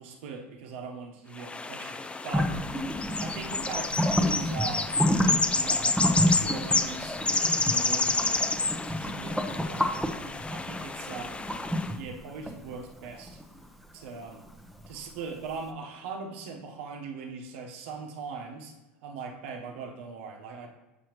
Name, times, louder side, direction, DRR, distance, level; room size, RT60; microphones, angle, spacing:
voice 1, 0.0-2.6 3.2-5.0 5.5-8.5 8.9-10.1 10.5-11.5 11.9-13.4 13.9-14.4 14.9-18.7 19.0-20.7, right 5 dB, 70° right, 4 dB, 1.1 m, -40 dB
sound 1, 1.4-11.9, left 3 dB, 15° left, 0.6 m, -29 dB
sound 2, 2.3-15.2, equal, ahead, 0.9 m, -30 dB
7.3 x 6.2 x 3.1 m, 1.0 s
hypercardioid pair, 80°, 7 cm